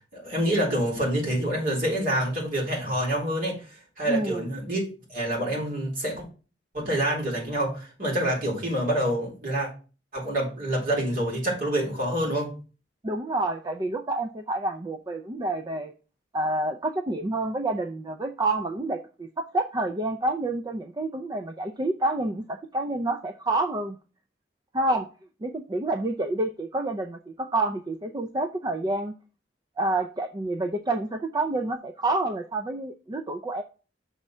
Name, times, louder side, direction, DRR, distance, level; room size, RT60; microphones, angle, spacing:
voice 1, 0.1-3.6 4.0-4.8 5.1-6.2 6.7-9.7 10.1-12.5, right 1 dB, 50° right, -3 dB, 3.9 m, -27 dB
voice 2, 4.1-4.5 13.0-15.9 16.3-24.0 24.7-25.1 25.4-29.1 29.8-33.6, right 2 dB, 25° right, 6 dB, 0.4 m, -28 dB
6.6 x 4.3 x 6.0 m, 0.35 s
head